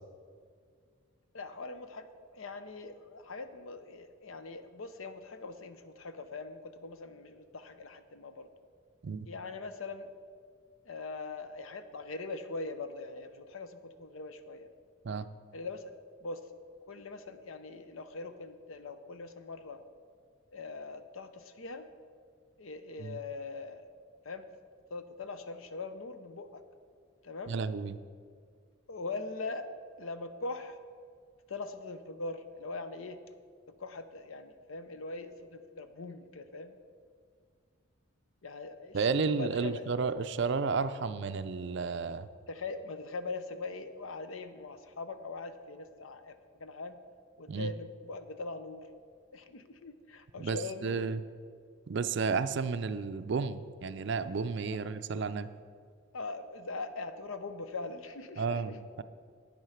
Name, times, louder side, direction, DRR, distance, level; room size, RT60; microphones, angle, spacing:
voice 1, 1.3-8.5 9.3-10.1 10.8-14.7 15.5-15.9 16.2-16.5 16.9-19.8 20.5-21.9 22.6-23.9 24.2-24.5 24.9-26.6 27.2-27.6 28.9-29.7 30.0-30.8 31.5-33.2 33.7-36.8 38.4-39.9 42.5-47.0 47.4-48.9 49.3-51.0 54.7-54.8 56.1-58.8, left 3 dB, 75° left, 10 dB, 0.7 m, -42 dB
voice 2, 27.5-28.0 38.9-42.3 47.5-47.7 50.4-51.2 51.9-55.5 58.4-59.0, right 5 dB, 55° right, 12 dB, 0.4 m, -32 dB
9.4 x 7.9 x 5.7 m, 2.1 s
head